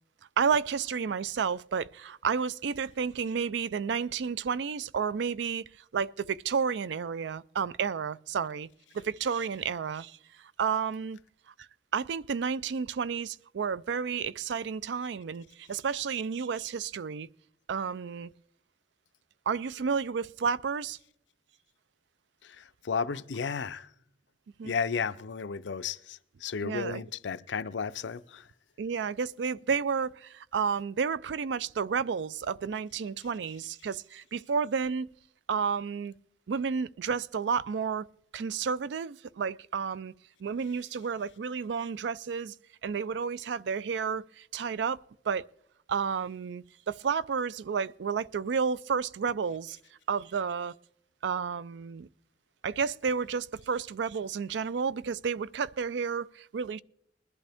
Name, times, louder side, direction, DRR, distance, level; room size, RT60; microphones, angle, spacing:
voice 1, 0.4-5.6 5.9-8.7 8.9-10.2 10.6-11.2 11.9-17.3 17.7-18.3 19.5-21.0 24.6-24.7 26.6-27.0 28.8-35.1 35.5-36.1 36.5-38.1 38.3-40.1 40.4-42.5 42.8-45.0 45.3-45.5 45.9-49.8 50.1-50.7 51.2-52.1 52.6-56.8, right 6 dB, 75° right, 0.4 m, -31 dB
voice 2, 22.4-23.9 24.6-28.4, left 6 dB, 85° left, 0.6 m, -33 dB
21.0 x 11.5 x 3.5 m
head